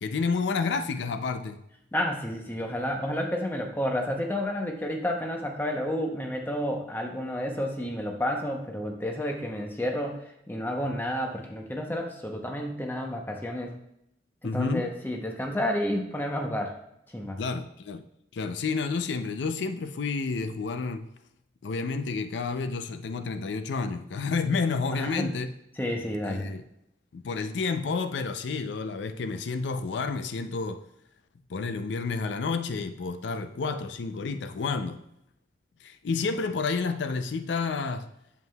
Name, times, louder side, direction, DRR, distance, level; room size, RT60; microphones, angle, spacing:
voice 1, 0.0-1.6 14.4-14.9 17.4-18.0 18.3-21.1 21.6-25.5 26.2-26.6 27.1-30.8 31.5-35.0 35.8-38.1, left 4 dB, 80° left, 0.4 m, -30 dB
voice 2, 1.9-13.7 14.4-16.8 17.1-17.4 24.9-25.3 25.8-26.5, equal, 10° left, 0.7 m, -30 dB
8.0 x 7.4 x 2.3 m
head